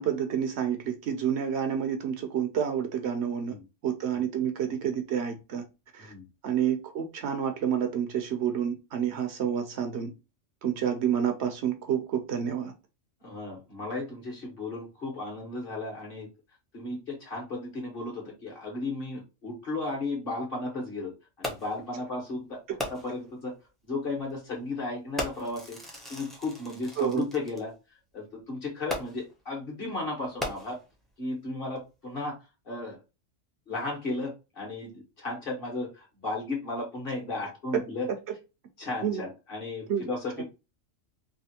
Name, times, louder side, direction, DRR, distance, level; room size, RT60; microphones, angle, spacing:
voice 1, 0.0-3.6 3.8-5.6 5.9-6.1 6.4-10.1 10.6-12.7 22.7-22.8 27.0-27.2 37.7-37.8 39.0-39.2 39.9-40.0 40.4-40.5, right 8 dB, 70° right, 6 dB, 0.8 m, -29 dB
voice 2, 13.2-16.3 16.7-21.1 21.4-22.6 22.9-23.5 23.8-25.8 26.1-27.7 28.1-30.8 31.2-32.4 32.6-33.0 33.7-38.1 38.8-40.4, left 2 dB, 50° left, -1 dB, 1.4 m, -34 dB
Fireworks, 21.4-21.9 22.8-23.3 24.2-24.3 25.2-27.6 28.9-29.4 30.2-31.1 31.8-31.9, equal, ahead, 0.5 m, -37 dB
3.3 x 2.5 x 2.8 m, 0.28 s
omnidirectional pair, 1.3 m